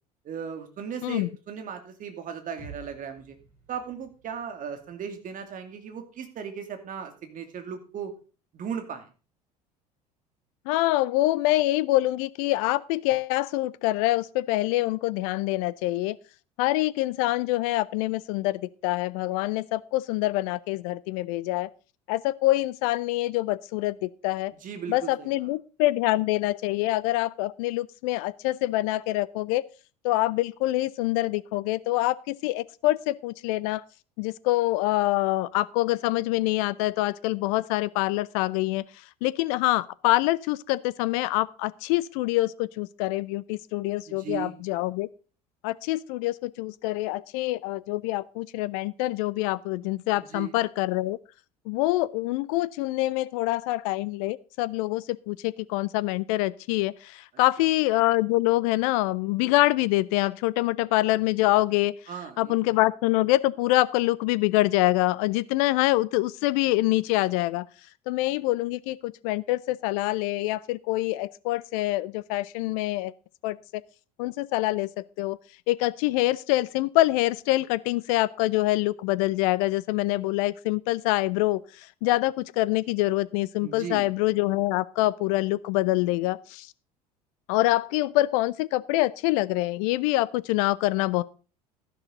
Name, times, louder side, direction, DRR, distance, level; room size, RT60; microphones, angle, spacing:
voice 1, 0.2-3.4 3.7-8.1 8.5-9.1 24.6-25.3 44.1-44.6 50.2-50.6 57.6-57.7 62.1-62.5 83.6-84.1, right 7 dB, 40° right, 6 dB, 2.5 m, -37 dB
sound 1, 2.6-6.4, right 3 dB, 90° right, 6.8 m, -52 dB
voice 2, 10.7-16.2 16.6-21.7 22.1-24.5 24.9-29.6 30.0-33.8 34.2-38.8 39.2-45.1 45.6-51.2 51.7-61.9 62.4-67.7 68.1-73.1 73.4-73.6 74.2-75.4 75.7-81.6 82.0-86.7 87.5-91.2, left 18 dB, 60° left, 20 dB, 0.6 m, -25 dB
12.5 x 11.0 x 3.9 m, 0.36 s
figure-of-eight pair, 65°, 20 cm